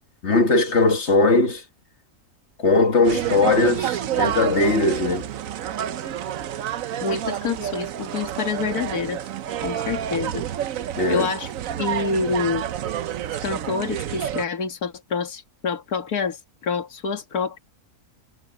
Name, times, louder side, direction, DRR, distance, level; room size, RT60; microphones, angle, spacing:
voice 1, 0.2-1.6 2.6-5.3 11.0-11.3, left 3 dB, 45° left, 1.9 m, -19 dB
sound 1, 3.0-14.4, right 10 dB, 65° right, 1.1 m, -29 dB
voice 2, 7.0-9.2 9.6-10.4 11.1-11.5 11.8-12.6 13.4-17.6, left 5 dB, 75° left, 2.3 m, -27 dB
omnidirectional pair, 1.6 m